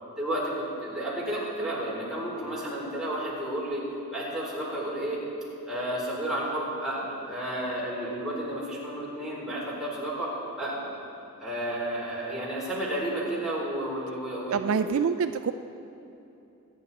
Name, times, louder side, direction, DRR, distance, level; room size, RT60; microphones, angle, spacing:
voice 1, 0.2-3.8 4.1-5.2 5.7-10.3 10.6-11.0 11.4-15.0, right 1 dB, 5° right, -7 dB, 3.8 m, -32 dB
voice 2, 14.5-15.5, right 6 dB, 60° right, 10 dB, 0.4 m, -26 dB
25.0 x 9.6 x 4.1 m, 2.9 s
head